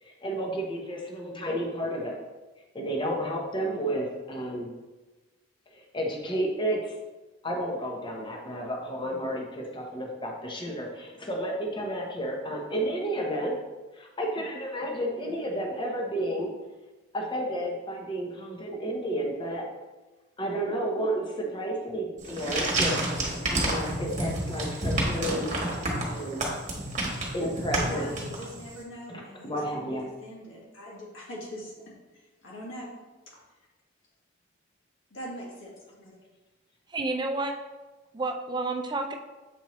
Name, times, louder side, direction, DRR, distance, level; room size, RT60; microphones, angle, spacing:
voice 1, 0.0-2.2 2.7-4.7 5.7-6.9 7.4-13.5 13.9-16.5 17.1-19.6 20.4-23.0 23.5-26.5 27.3-28.1 29.1-30.1, right 1 dB, 25° left, 0 dB, 0.9 m, -32 dB
sound 1, 22.2-28.7, right 1 dB, 40° right, 1.3 m, -29 dB
voice 2, 27.7-32.9 33.3-33.4 35.1-36.1, equal, 70° left, -4 dB, 1.8 m, -42 dB
voice 3, 36.9-37.5 38.1-39.2, right 3 dB, 20° right, 4 dB, 0.5 m, -30 dB
7.1 x 4.4 x 3.1 m, 1.2 s
head